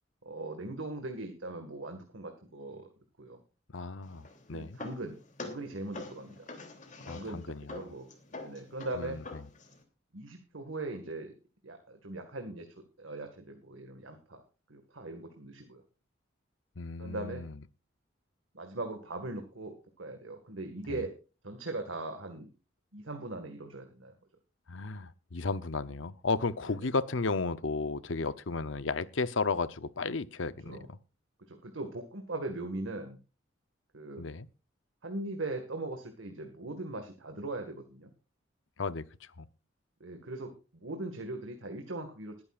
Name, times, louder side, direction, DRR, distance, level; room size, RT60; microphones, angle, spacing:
voice 1, 0.3-2.9 3.2-3.4 4.5-6.5 7.0-8.1 8.3-9.2 10.1-11.3 11.6-12.7 13.0-14.4 14.7-15.8 17.0-17.4 18.5-21.1 21.4-22.5 22.9-24.1 26.7-26.8 30.6-30.9 31.5-33.2 33.9-34.3 35.0-38.1 40.0-42.4, right 2 dB, 85° right, 1.9 m, -40 dB
voice 2, 3.7-4.8 7.1-7.8 9.0-9.4 16.8-17.6 20.9-21.0 24.7-31.0 34.2-34.5 38.8-39.0 39.4-39.5, left 4 dB, 75° left, 0.8 m, -34 dB
sound 1, 4.0-9.8, left 3 dB, 40° left, 3.1 m, -46 dB
20.5 x 10.5 x 2.5 m
head